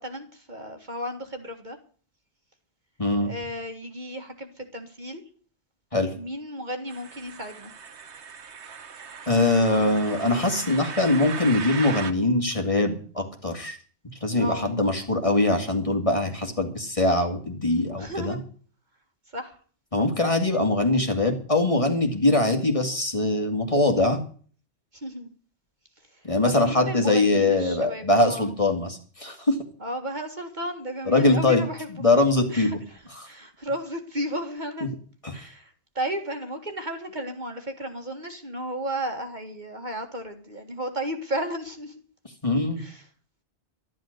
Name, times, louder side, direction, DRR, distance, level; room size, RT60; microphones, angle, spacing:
voice 1, 0.0-1.8 3.2-5.2 6.1-7.7 10.1-10.7 14.3-14.7 18.0-18.4 19.3-19.6 24.9-25.3 26.5-28.5 29.8-32.2 32.5-34.9 35.3-41.9 42.8-43.0, equal, 40° right, 5 dB, 2.0 m, -34 dB
voice 2, 3.0-3.3 5.9-6.1 9.3-13.8 14.2-18.4 19.9-24.2 26.2-29.6 31.1-31.6 32.0-32.8 33.1-33.3 35.2-35.4 42.4-42.8, left 2 dB, 30° left, 3 dB, 2.4 m, -22 dB
sound 1, 6.9-12.1, right 6 dB, 70° right, 1.4 m, -38 dB
13.0 x 11.0 x 6.7 m, 0.43 s
omnidirectional pair, 1.2 m